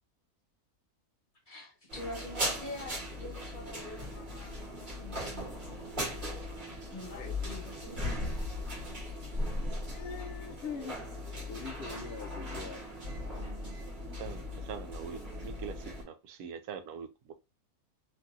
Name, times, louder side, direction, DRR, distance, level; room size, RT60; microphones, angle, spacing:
voice 1, 1.5-5.3 5.5-8.3, left 2 dB, 35° left, 1.3 m, -46 dB
sound 1, 1.9-16.0, left 1 dB, 35° right, 1.3 m, -38 dB
voice 2, 9.9-11.0 11.5-12.8, left 5 dB, 65° left, 0.6 m, -42 dB
voice 3, 14.2-17.3, right 7 dB, 80° right, 1.1 m, -43 dB
2.9 x 2.7 x 2.3 m
omnidirectional pair, 1.6 m